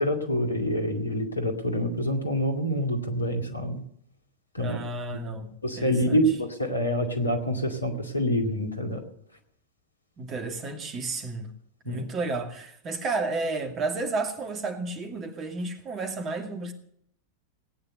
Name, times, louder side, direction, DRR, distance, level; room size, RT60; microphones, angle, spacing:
voice 1, 0.0-3.8 4.5-4.8 5.1-5.2 5.6-9.0 11.9-12.0, equal, 80° left, 2.3 m, -26 dB
voice 2, 4.6-6.2 10.2-11.5 11.8-16.7, right 3 dB, 30° right, 2.2 m, -32 dB
18.0 x 9.8 x 6.7 m
figure-of-eight pair, 90°, 0 cm